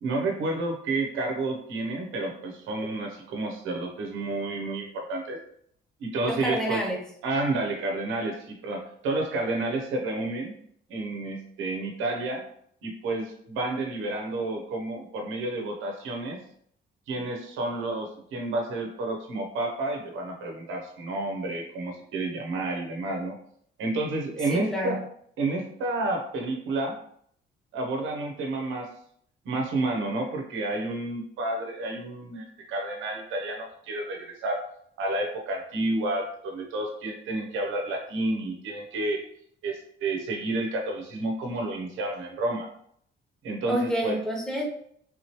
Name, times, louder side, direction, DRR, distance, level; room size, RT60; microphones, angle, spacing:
voice 1, 0.0-5.4 6.0-6.8 7.2-10.5 10.9-12.4 12.8-16.4 17.1-23.4 23.8-25.0 25.4-26.9 27.7-28.9 29.4-34.6 35.0-39.2 39.6-42.7 43.4-44.2, right 2 dB, 90° right, 2 dB, 0.9 m, -30 dB
voice 2, 6.2-7.0 24.5-25.0 43.7-44.7, equal, 5° left, -2 dB, 1.1 m, -28 dB
3.8 x 2.9 x 3.1 m, 0.65 s
cardioid pair, 90°, 20 cm